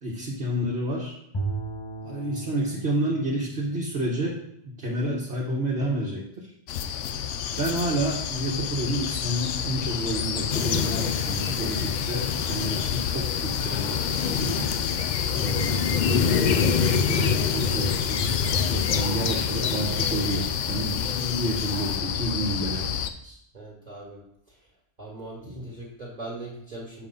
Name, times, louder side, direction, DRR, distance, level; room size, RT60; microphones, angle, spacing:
voice 1, 0.0-1.1 2.0-6.5 7.6-14.7 15.3-18.4 18.7-23.0 23.2-23.4 25.4-25.6, right 1 dB, 55° right, -5 dB, 1.6 m, -30 dB
Bowed string instrument, 1.3-5.6, right 3 dB, 25° left, 0.7 m, -37 dB
sound 1, 6.7-23.1, left 8 dB, 85° left, 0.9 m, -30 dB
sound 2, 10.5-22.0, left 6 dB, 60° left, 0.5 m, -27 dB
voice 2, 23.5-24.7 25.0-27.1, right 2 dB, 35° right, -5 dB, 1.8 m, -40 dB
7.1 x 5.5 x 3.8 m, 0.75 s
omnidirectional pair, 1.3 m